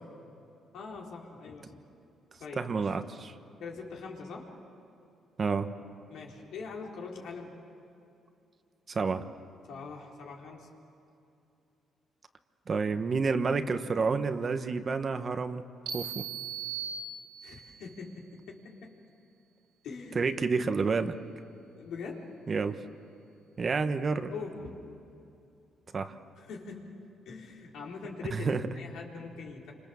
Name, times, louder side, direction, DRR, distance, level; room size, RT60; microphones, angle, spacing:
voice 1, 0.7-1.8 2.4-2.9 3.6-4.5 6.1-7.6 9.7-10.7 17.4-18.9 19.8-20.3 21.8-22.3 24.3-24.8 26.4-26.9 27.3-29.7, left 4 dB, 80° left, -1 dB, 4.0 m, -42 dB
voice 2, 2.6-3.3 5.4-5.7 8.9-9.2 12.7-15.6 15.9-16.2 20.1-21.2 22.5-22.8 23.6-24.3 25.9-26.1 28.3-28.6, right 4 dB, 40° right, 9 dB, 1.2 m, -29 dB
sound 1, 15.9-17.7, right 6 dB, 75° right, 3.8 m, -38 dB
28.0 x 25.5 x 7.1 m, 2.7 s
cardioid pair, 90°, 0 cm